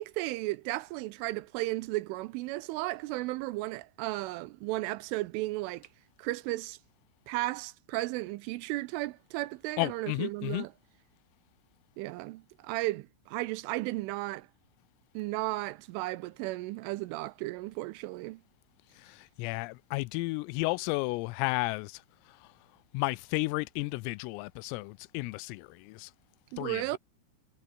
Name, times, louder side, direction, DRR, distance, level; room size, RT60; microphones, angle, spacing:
voice 1, 0.0-5.9 6.2-6.8 7.3-10.7 12.0-14.5 15.1-18.4 26.5-27.0, right 19 dB, 80° right, 3.0 m, -34 dB
voice 2, 9.8-10.7 19.0-22.0 22.4-22.5 22.9-26.1 26.6-27.0, left 23 dB, 85° left, 3.3 m, -33 dB
omnidirectional pair, 6.0 m